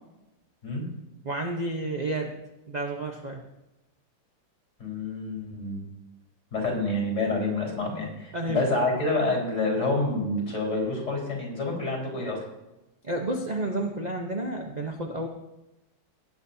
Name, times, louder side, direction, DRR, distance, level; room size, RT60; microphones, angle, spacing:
voice 1, 1.2-2.3 2.7-3.4 8.3-8.7 13.0-15.3, right 2 dB, 40° right, 1 dB, 0.6 m, -30 dB
voice 2, 4.8-5.8 6.5-12.4, left 2 dB, 35° left, -1 dB, 4.8 m, -28 dB
18.0 x 9.4 x 2.8 m, 0.96 s
omnidirectional pair, 2.2 m